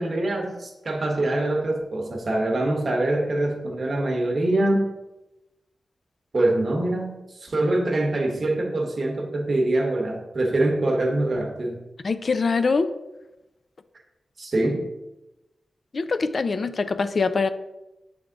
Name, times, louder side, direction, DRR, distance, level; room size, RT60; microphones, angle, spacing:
voice 1, 0.0-4.9 6.3-7.1 7.4-11.8 14.4-14.9, right 2 dB, 45° right, 2 dB, 1.0 m, -24 dB
voice 2, 12.0-12.9 15.9-17.5, left 4 dB, 45° left, 12 dB, 0.3 m, -23 dB
7.5 x 3.5 x 3.8 m, 0.98 s
wide cardioid pair, 135°, 0 cm